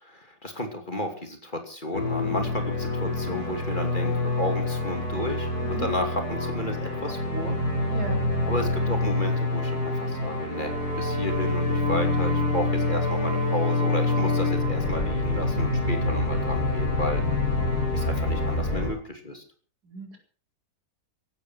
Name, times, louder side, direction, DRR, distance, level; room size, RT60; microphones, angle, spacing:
voice 1, 0.0-7.6 8.4-17.2 17.9-19.4, left 1 dB, 30° left, 5 dB, 2.8 m, -33 dB
sound 1, 1.9-18.9, left 2 dB, 70° left, 4.6 m, -26 dB
voice 2, 7.9-8.2 19.9-20.2, right 3 dB, 75° right, 2 dB, 4.8 m, -36 dB
15.5 x 12.5 x 6.2 m, 0.41 s
omnidirectional pair, 1.7 m